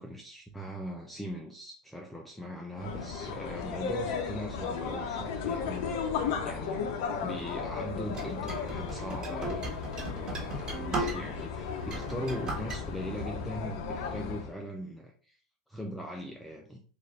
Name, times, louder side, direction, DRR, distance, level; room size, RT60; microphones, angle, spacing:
voice 1, 0.0-7.0 7.2-9.7 10.1-15.4 15.7-16.8, equal, 5° left, 1 dB, 0.5 m, -40 dB
sound 1, 2.7-14.5, left 6 dB, 65° left, 0.8 m, -35 dB
sound 2, 8.1-11.5 11.8-12.8, right 2 dB, 25° right, 1.4 m, -36 dB
3.8 x 2.6 x 3.2 m, 0.41 s
supercardioid pair, 130°, 3 cm